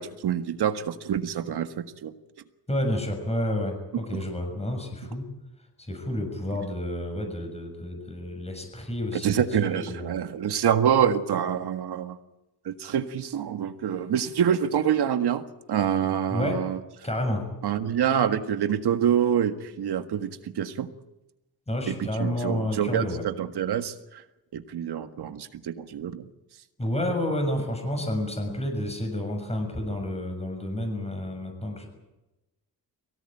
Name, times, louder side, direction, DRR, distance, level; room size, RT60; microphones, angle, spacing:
voice 1, 0.0-2.1 4.1-4.2 9.2-12.2 12.7-16.8 17.6-20.9 21.9-24.2 24.5-26.3, right 9 dB, 80° right, 8 dB, 1.8 m, -26 dB
voice 2, 2.7-5.3 5.8-9.5 9.7-10.1 16.3-16.6 17.0-17.5 21.7-23.2 26.8-31.9, left 1 dB, 15° left, 5 dB, 6.6 m, -30 dB
23.5 x 17.5 x 9.1 m, 0.99 s
cardioid pair, 100°, 39 cm